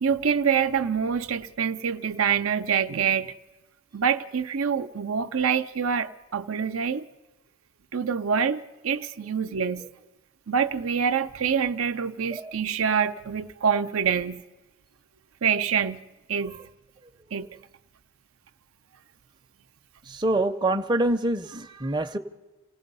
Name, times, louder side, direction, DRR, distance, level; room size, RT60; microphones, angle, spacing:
voice 1, 0.0-3.3 3.9-7.1 7.9-9.9 10.5-14.4 15.4-16.0 16.3-16.5 17.3-17.5, right 7 dB, 75° right, 0.6 m, -26 dB
voice 2, 20.1-22.2, right 2 dB, 20° right, 0.6 m, -25 dB
28.0 x 17.5 x 5.4 m
head